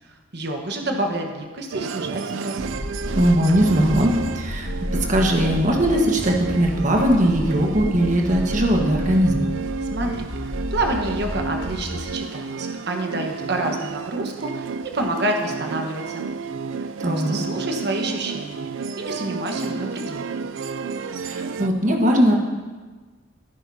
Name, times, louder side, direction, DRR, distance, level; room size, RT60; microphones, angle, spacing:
voice 1, 0.3-2.7 9.9-16.3 17.0-20.3, right 1 dB, 60° right, 3 dB, 1.3 m, -28 dB
sound 1, 1.7-21.7, right 4 dB, 85° right, 0.4 m, -31 dB
sound 2, 2.6-12.1, left 1 dB, 15° left, 0.4 m, -32 dB
voice 2, 3.1-4.7 5.1-9.5 17.0-17.4 21.2-22.4, equal, 40° right, 0 dB, 1.4 m, -19 dB
15.5 x 10.0 x 2.8 m, 1.4 s
head